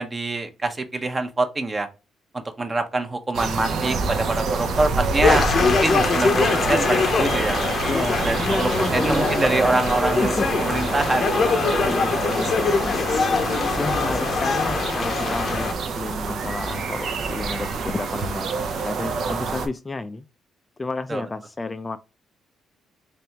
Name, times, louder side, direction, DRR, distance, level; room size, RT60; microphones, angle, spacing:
voice 1, 0.0-1.9 2.3-7.6 8.3-11.4 15.2-15.3 21.1-21.2, right 2 dB, 25° right, 0.8 m, -25 dB
sound 1, 3.3-19.7, right 4 dB, 65° right, 0.7 m, -27 dB
sound 2, 5.2-15.7, left 4 dB, 50° left, 0.7 m, -23 dB
voice 2, 7.8-9.9 10.2-10.5 11.8-13.0 13.8-20.2 20.8-22.0, left 3 dB, 25° left, 0.4 m, -31 dB
3.4 x 3.3 x 2.8 m
cardioid pair, 90°, 0 cm